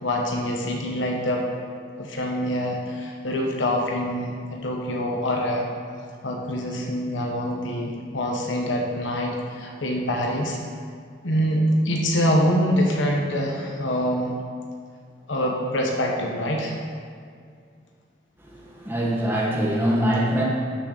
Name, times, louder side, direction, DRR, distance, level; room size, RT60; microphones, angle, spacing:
voice 1, 0.0-1.4 2.0-5.7 6.2-10.6 11.2-14.3 15.3-16.7, equal, 85° left, 0 dB, 1.2 m, -25 dB
voice 2, 18.7-20.4, equal, 10° right, -4 dB, 1.7 m, -23 dB
12.5 x 6.5 x 4.1 m, 2.2 s
head